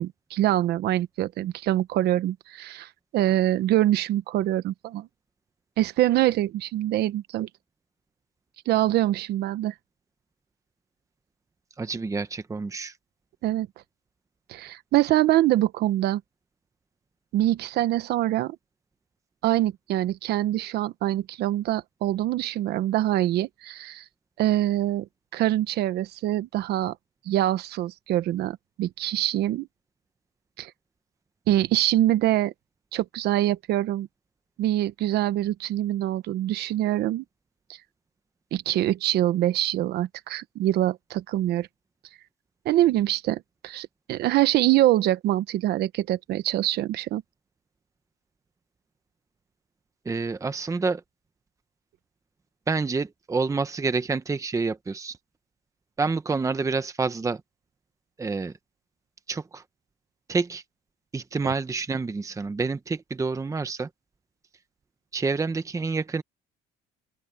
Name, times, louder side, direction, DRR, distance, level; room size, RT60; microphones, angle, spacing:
voice 1, 0.0-5.1 5.8-7.5 8.7-9.7 13.4-13.7 14.5-16.2 17.3-18.6 19.4-24.0 24.4-27.0 27.3-29.7 30.6-30.7 31.5-32.5 32.9-34.1 34.6-37.2 38.5-41.7 42.6-47.2, right 14 dB, 75° right, 1.0 m, -24 dB
voice 2, 11.8-13.0 50.0-51.0 52.7-55.2 56.0-57.4 58.2-58.5 59.3-59.6 60.3-60.6 61.1-63.9 65.1-66.2, right 4 dB, 20° right, 1.0 m, -28 dB
open air
cardioid pair, 110°, 17 cm